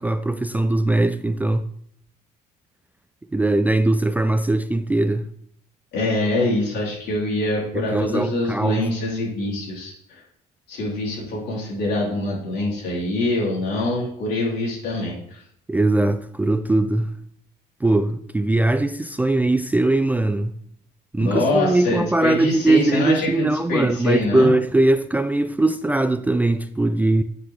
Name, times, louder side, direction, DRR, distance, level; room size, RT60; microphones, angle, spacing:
voice 1, 0.0-1.7 3.3-5.3 7.7-8.9 15.7-17.1 17.8-20.6 21.1-27.2, right 2 dB, 10° right, 0.3 m, -20 dB
voice 2, 5.9-9.9 10.7-15.1 21.2-24.5, left 2 dB, 75° left, 3.5 m, -24 dB
10.0 x 6.0 x 3.3 m
cardioid pair, 110°, 17 cm